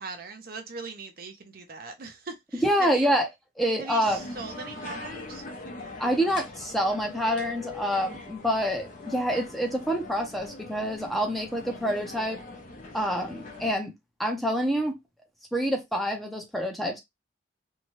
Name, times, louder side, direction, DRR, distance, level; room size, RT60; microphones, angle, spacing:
voice 1, 0.0-3.1 3.8-5.5, right 4 dB, 55° right, 0.6 m, -40 dB
voice 2, 2.5-3.3 3.6-4.2 6.0-12.4 12.9-13.9 14.2-15.0 15.5-17.0, equal, ahead, 0.6 m, -27 dB
sound 1, 4.1-13.7, left 3 dB, 45° left, 0.7 m, -42 dB
2.7 x 2.3 x 3.0 m
head